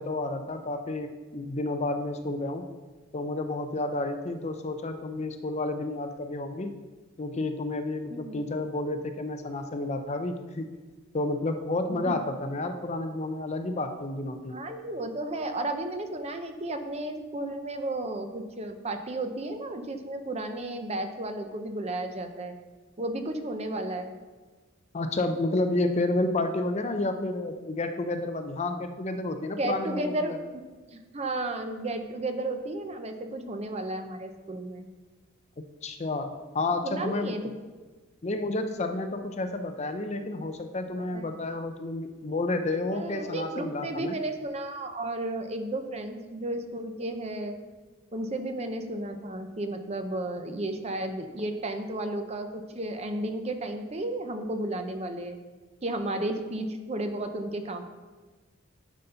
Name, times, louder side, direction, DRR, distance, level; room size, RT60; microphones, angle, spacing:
voice 1, 0.0-2.6 3.1-6.7 7.2-10.7 11.1-14.6 24.9-30.4 35.8-37.3 38.2-44.2, left 2 dB, 30° left, 7 dB, 0.5 m, -30 dB
voice 2, 14.5-22.6 23.0-24.1 29.6-30.4 30.9-34.9 36.8-37.5 41.1-41.4 42.9-47.5 48.1-55.4 55.8-57.8, right 1 dB, 30° right, 7 dB, 0.6 m, -33 dB
10.5 x 4.1 x 5.6 m, 1.3 s
head